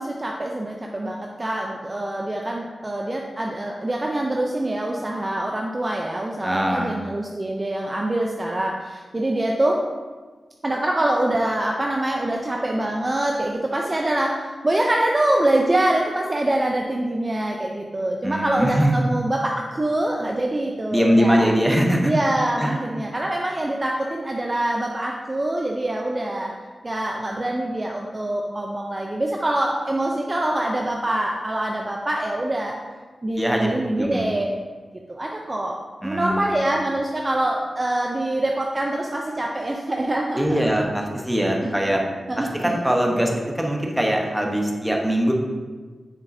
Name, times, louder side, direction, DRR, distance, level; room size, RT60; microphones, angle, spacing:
voice 1, 0.0-9.8 10.6-21.5 22.0-26.5 26.8-32.7 33.2-34.5 35.1-40.8 41.6-41.7 42.3-42.8, right 1 dB, 25° right, 0 dB, 0.5 m, -25 dB
voice 2, 6.4-6.9 18.2-19.0 20.9-22.1 22.6-22.9 33.4-33.7 34.0-34.3 36.0-36.7 40.3-42.0 42.4-45.3, equal, 5° right, 0 dB, 1.0 m, -22 dB
7.4 x 6.3 x 2.7 m, 1.4 s
wide cardioid pair, 90°, 0 cm